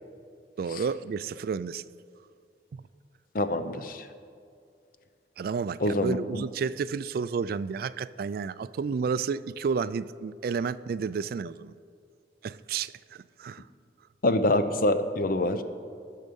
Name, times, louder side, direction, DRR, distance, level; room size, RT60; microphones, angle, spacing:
voice 1, 0.6-1.8 5.4-11.7 12.4-13.7, right 5 dB, 55° right, 0.3 m, -31 dB
voice 2, 3.3-4.1 5.8-6.4 14.2-15.6, left 1 dB, 55° left, 0.7 m, -25 dB
19.0 x 6.6 x 5.3 m
head